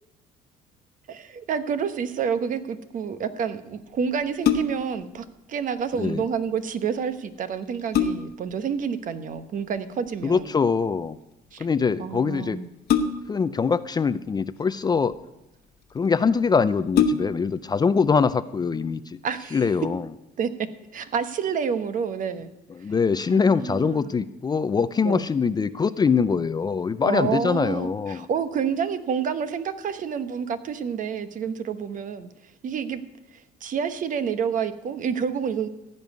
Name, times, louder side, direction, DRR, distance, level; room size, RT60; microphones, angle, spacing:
voice 1, 1.1-10.5 11.5-11.7 12.0-12.7 19.2-19.7 20.4-20.5 20.9-22.5 23.3-24.1 25.0-25.2 27.0-32.3 32.6-33.0 33.3-35.7, right 7 dB, 50° right, 11 dB, 1.0 m, -29 dB
sound 1, 4.2-5.0 7.0-7.1 7.6-8.5 10.0-10.4 12.9-13.5 14.4-15.1 15.9-16.0 16.3-16.4 16.9-17.6 18.0-18.1, left 7 dB, 70° left, 1.1 m, -24 dB
voice 2, 10.2-11.2 11.6-12.6 13.3-15.2 15.9-19.2 19.5-20.0 22.8-28.3, left 5 dB, 25° left, 14 dB, 0.4 m, -23 dB
15.0 x 5.5 x 9.4 m, 0.95 s
cardioid pair, 110°, 17 cm